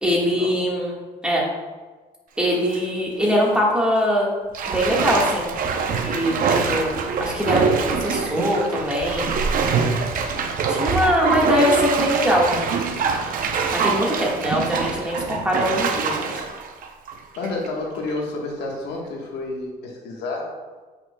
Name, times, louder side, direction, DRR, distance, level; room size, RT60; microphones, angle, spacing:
voice 1, 0.0-0.9 1.2-1.4 2.4-4.3 4.7-5.5 6.0-7.6 7.9-9.4 10.7-12.6 13.7-16.4, equal, 5° right, -4 dB, 1.6 m, -22 dB
Bathtub (filling or washing), 2.4-2.8 3.2-3.4 4.5-17.7 18.1-18.2, right 5 dB, 55° right, 0.7 m, -24 dB
voice 2, 17.4-20.5, left 2 dB, 85° left, -1 dB, 1.4 m, -30 dB
7.9 x 5.9 x 2.3 m, 1.3 s
cardioid pair, 110°, 17 cm